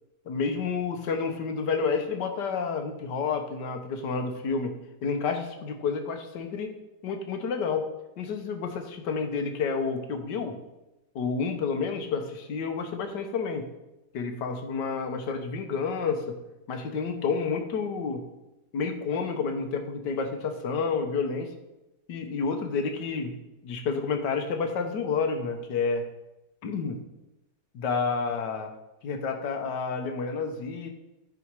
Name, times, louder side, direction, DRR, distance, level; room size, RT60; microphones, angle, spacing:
voice 1, 0.3-4.7 5.0-6.7 7.0-7.9 8.2-10.6 11.1-13.7 14.1-16.4 16.7-18.2 18.7-21.5 22.1-23.3 23.6-26.0 26.6-27.0 27.7-28.7 29.0-30.9, left 5 dB, 70° left, 6 dB, 1.7 m, -29 dB
13.5 x 4.9 x 4.7 m, 0.96 s
omnidirectional pair, 1.9 m